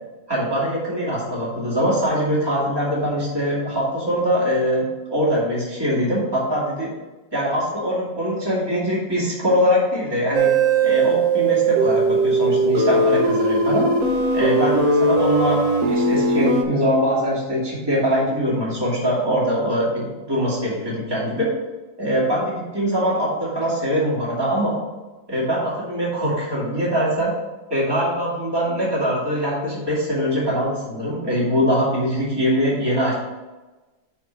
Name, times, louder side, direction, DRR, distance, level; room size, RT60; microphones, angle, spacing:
voice 1, 0.3-6.9 7.3-10.5 10.8-13.9 14.3-21.5 22.0-24.8 25.3-27.3 27.7-33.1, equal, 10° right, -6 dB, 2.2 m, -22 dB
sound 1, 10.3-16.6, right 3 dB, 55° right, 1.0 m, -19 dB
5.6 x 4.4 x 5.9 m, 1.1 s
omnidirectional pair, 2.0 m